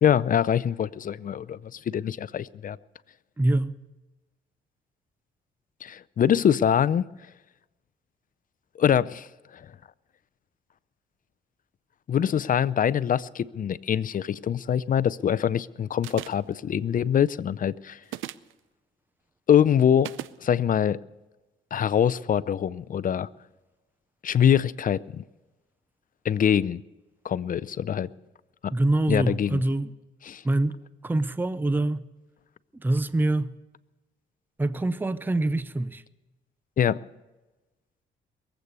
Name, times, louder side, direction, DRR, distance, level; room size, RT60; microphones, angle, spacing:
voice 1, 0.0-2.8 5.8-7.0 8.8-9.3 9.5-9.7 12.1-18.0 19.5-20.1 20.4-21.0 21.7-23.3 24.2-25.2 26.2-26.8 27.2-28.1 28.6-28.7 29.1-29.6 30.2-30.4 36.8-37.0, left 9 dB, 45° left, 0.5 m, -24 dB
voice 2, 3.4-3.7 28.7-29.9 30.4-30.8 31.0-32.1 32.7-33.5 34.6-36.0, right 2 dB, 10° right, 0.6 m, -25 dB
sound 1, 16.0-16.5 18.0-18.5 20.0-20.4, right 14 dB, 85° right, 0.6 m, -37 dB
22.0 x 8.3 x 6.8 m
cardioid pair, 90°, 20 cm